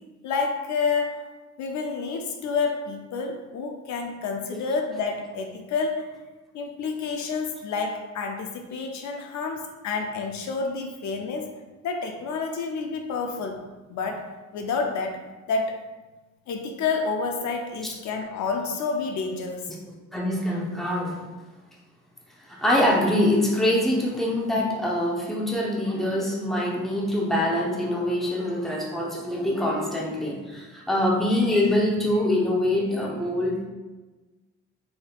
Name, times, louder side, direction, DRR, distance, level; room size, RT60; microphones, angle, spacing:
voice 1, 0.2-1.3 1.6-6.1 6.5-11.5 11.8-13.6 13.9-15.8 16.5-19.7, left 4 dB, 70° left, 4 dB, 0.5 m, -29 dB
voice 2, 20.1-21.2 22.5-33.6, left 1 dB, ahead, -3 dB, 0.6 m, -24 dB
3.5 x 2.7 x 2.3 m, 1.2 s
cardioid pair, 90°, 30 cm